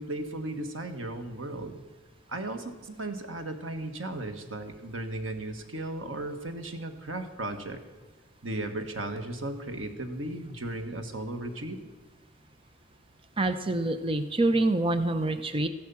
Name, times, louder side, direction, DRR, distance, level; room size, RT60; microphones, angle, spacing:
voice 1, 0.0-1.8 2.3-7.8 8.4-11.8, right 2 dB, 90° right, 7 dB, 1.5 m, -36 dB
voice 2, 13.4-15.7, right 2 dB, 30° right, 9 dB, 0.7 m, -26 dB
14.5 x 11.0 x 7.0 m, 1.3 s
head